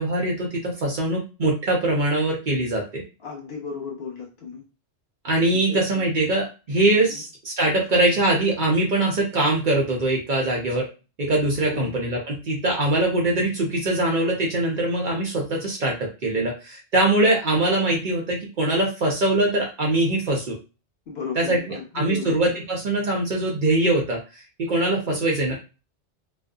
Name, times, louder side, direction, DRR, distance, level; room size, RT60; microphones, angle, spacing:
voice 1, 0.0-3.0 5.2-10.9 11.2-20.6 21.4-21.6 21.9-24.2 24.6-25.6, right 2 dB, 55° right, -1 dB, 0.6 m, -22 dB
voice 2, 3.2-4.6 5.5-6.0 7.1-7.2 11.7-12.0 21.1-22.3 25.0-25.3, left 5 dB, 65° left, -1 dB, 1.1 m, -35 dB
2.5 x 2.4 x 2.3 m, 0.31 s
omnidirectional pair, 1.2 m